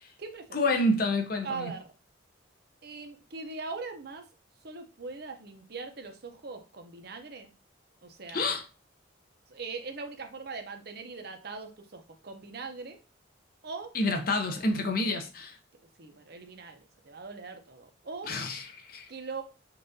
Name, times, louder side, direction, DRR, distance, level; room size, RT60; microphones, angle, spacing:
voice 1, 0.5-1.7 8.3-8.6 13.9-15.6 18.2-19.1, left 2 dB, 45° left, 0.6 m, -28 dB
voice 2, 1.4-1.8 2.8-4.2 4.6-7.5 8.0-8.5 9.5-13.0 13.6-13.9 16.0-18.3 19.1-19.4, right 4 dB, 50° right, 0.6 m, -41 dB
5.4 x 2.5 x 2.7 m
head